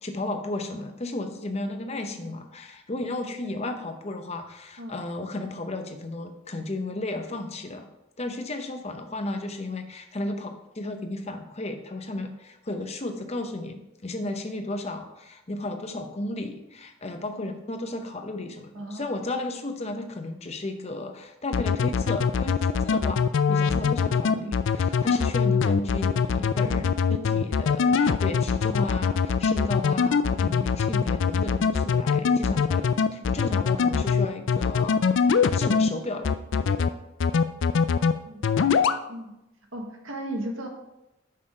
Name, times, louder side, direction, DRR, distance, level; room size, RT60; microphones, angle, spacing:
voice 1, 0.0-7.9 8.2-10.5 10.8-35.2 35.5-36.9, left 2 dB, 30° left, 6 dB, 0.7 m, -34 dB
voice 2, 18.7-19.1 24.3-24.5 26.6-26.8 34.5-34.6 38.3-38.4 39.1-39.3 39.7-40.7, right 1 dB, 90° right, 1 dB, 1.4 m, -36 dB
sound 1, 21.5-35.9 36.2-36.9 37.2-38.1 38.4-39.0, left 6 dB, 70° left, 0.4 m, -22 dB
6.5 x 5.6 x 4.8 m, 0.91 s
head